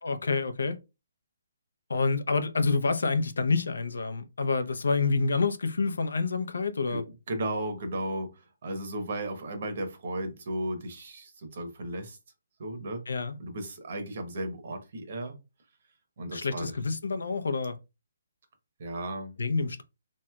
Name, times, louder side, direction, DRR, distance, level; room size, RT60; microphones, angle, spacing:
voice 1, 0.0-0.8 1.9-7.0 13.1-13.4 16.3-17.8 19.4-19.8, left 4 dB, 85° left, 0.5 m, -28 dB
voice 2, 7.3-12.2 12.6-13.0 13.4-15.4 16.2-16.7 18.8-19.4, right 1 dB, 50° right, 0.9 m, -35 dB
3.0 x 2.8 x 2.3 m
hypercardioid pair, 160°, 0 cm